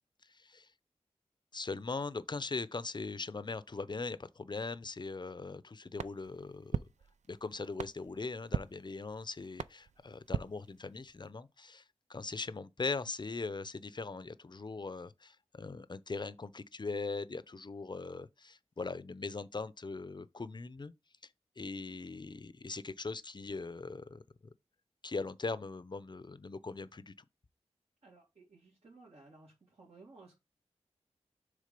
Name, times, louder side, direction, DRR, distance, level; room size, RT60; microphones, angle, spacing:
voice 1, 0.3-0.7 1.5-6.8 7.3-11.8 12.1-20.9 21.6-24.2 25.0-27.1, left 3 dB, 40° left, 0.6 m, -40 dB
sound 1, 6.0-11.3, right 7 dB, 80° right, 0.4 m, -41 dB
voice 2, 28.0-30.3, right 3 dB, 65° right, 2.4 m, -57 dB
6.5 x 3.6 x 5.3 m
wide cardioid pair, 50°, 12 cm